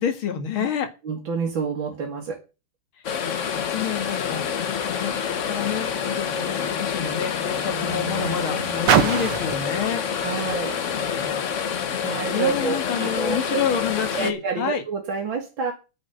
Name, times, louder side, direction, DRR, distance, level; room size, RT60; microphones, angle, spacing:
voice 1, 0.0-0.9 3.3-10.0 11.0-11.5 12.3-14.8, left 8 dB, 70° left, 6 dB, 2.4 m, -29 dB
voice 2, 1.0-2.4 10.2-11.3 12.0-13.6 14.1-15.7, right 5 dB, 65° right, 1 dB, 2.7 m, -28 dB
sound 1, 3.0-14.3, left 7 dB, 50° left, 1.0 m, -27 dB
Car, 5.3-11.9 12.7-12.8, right 7 dB, 85° right, 2.1 m, -29 dB
9.4 x 6.6 x 7.9 m, 0.30 s
omnidirectional pair, 2.4 m